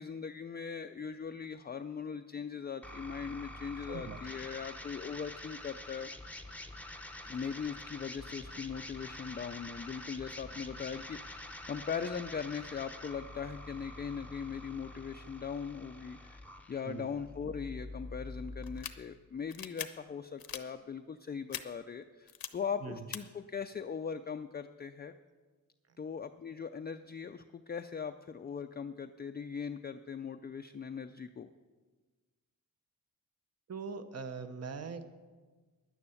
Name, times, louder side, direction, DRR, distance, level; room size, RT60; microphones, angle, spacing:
voice 1, 0.0-6.4 7.2-25.1 26.0-31.5, left 6 dB, 30° left, 7 dB, 0.4 m, -40 dB
sound 1, 2.8-18.8, left 1 dB, 5° left, 0.8 m, -46 dB
voice 2, 3.9-4.2 16.8-17.1 22.8-23.0 33.7-35.1, right 5 dB, 45° right, 9 dB, 1.0 m, -41 dB
sound 2, 18.6-18.9 19.5-19.9 20.4-20.6 21.5-21.6 22.3-22.5 23.1-23.2, left 10 dB, 85° left, 0.8 m, -40 dB
10.5 x 9.6 x 7.1 m, 1.4 s
wide cardioid pair, 105°, 34 cm